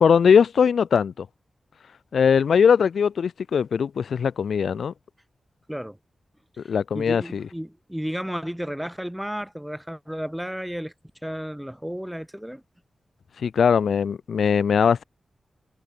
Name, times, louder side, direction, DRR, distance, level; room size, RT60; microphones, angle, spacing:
voice 1, 0.0-1.3 2.1-4.9 6.7-7.4 13.4-15.0, left 7 dB, 90° left, 0.5 m, -20 dB
voice 2, 6.9-10.9 11.2-12.6, equal, 5° right, 3.2 m, -32 dB
wide cardioid pair, 75°, 0 cm